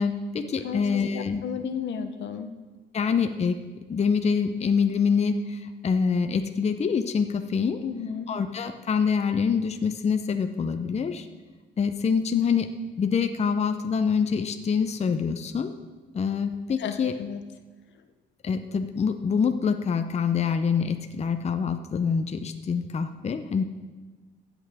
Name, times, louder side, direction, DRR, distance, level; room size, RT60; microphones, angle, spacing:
voice 1, 0.0-1.4 2.9-3.6 3.9-7.8 8.3-11.3 11.8-12.7 13.0-15.7 16.1-17.1 18.4-23.6, left 6 dB, 35° left, 8 dB, 0.6 m, -25 dB
voice 2, 0.6-2.5 7.8-8.3 16.8-17.4, left 7 dB, 65° left, 8 dB, 0.8 m, -33 dB
15.0 x 8.1 x 3.5 m, 1.3 s
cardioid pair, 90°, 20 cm